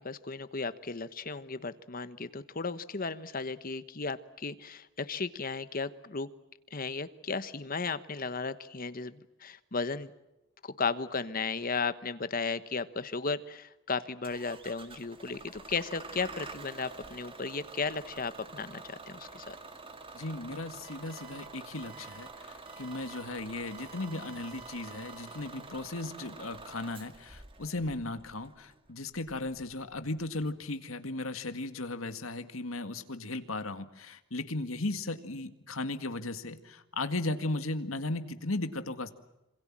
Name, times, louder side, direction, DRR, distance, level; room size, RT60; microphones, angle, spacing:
voice 1, 0.0-6.3 6.7-10.1 10.6-19.5, left 4 dB, 45° left, 13 dB, 1.1 m, -35 dB
Bus / Engine starting, 14.2-30.5, right 3 dB, 25° right, 2.1 m, -48 dB
voice 2, 20.1-39.1, left 2 dB, 85° left, 9 dB, 2.0 m, -36 dB
sound 1, 20.8-21.5 21.8-22.3 22.7-23.2 23.7-26.0, right 8 dB, 40° right, 6.0 m, -54 dB
27.0 x 26.5 x 7.5 m, 0.92 s
head